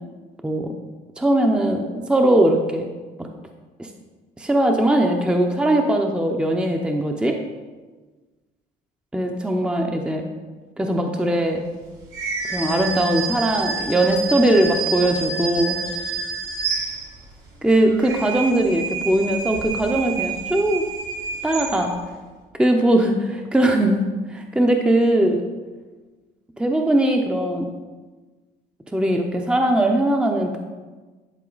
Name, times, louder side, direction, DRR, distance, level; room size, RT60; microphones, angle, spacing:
voice 1, 1.2-2.9 4.4-7.4 9.1-10.3 10.8-11.6 12.5-15.8 17.6-20.8 21.4-21.9 22.6-25.4 26.6-27.7 28.9-30.6, right 1 dB, 5° right, 3 dB, 0.6 m, -20 dB
sound 1, 12.1-17.4 17.8-22.1, right 4 dB, 85° right, 1.5 m, -29 dB
10.5 x 4.2 x 3.9 m, 1.3 s
cardioid pair, 110°, 17 cm